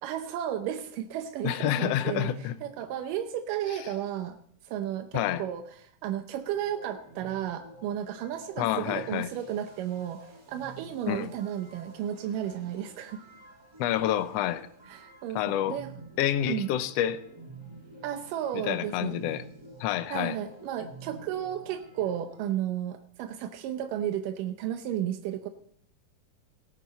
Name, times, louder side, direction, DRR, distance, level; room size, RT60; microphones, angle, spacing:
voice 1, 0.0-2.3 2.6-4.4 4.6-13.2 14.9-15.9 16.5-16.8 18.0-19.2 20.1-25.5, right 10 dB, 90° right, 7 dB, 2.5 m, -33 dB
voice 2, 1.4-2.5 5.1-5.4 8.6-9.3 11.0-11.3 13.8-14.7 15.3-15.8 16.2-17.2 18.6-19.4 19.8-20.4, left 12 dB, 85° left, 11 dB, 1.4 m, -28 dB
sound 1, 6.4-22.4, right 3 dB, 10° right, 3.4 m, -50 dB
18.0 x 11.0 x 4.1 m, 0.64 s
omnidirectional pair, 3.7 m